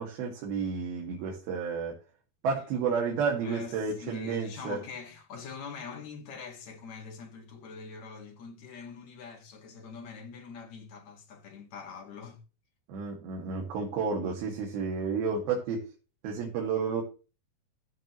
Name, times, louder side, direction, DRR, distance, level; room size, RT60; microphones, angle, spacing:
voice 1, 0.0-2.0 2.4-4.8 12.9-15.8 16.2-17.0, right 5 dB, 85° right, 3.6 m, -31 dB
voice 2, 3.4-12.4, left 5 dB, 55° left, 2.8 m, -43 dB
14.5 x 7.5 x 3.0 m
omnidirectional pair, 4.2 m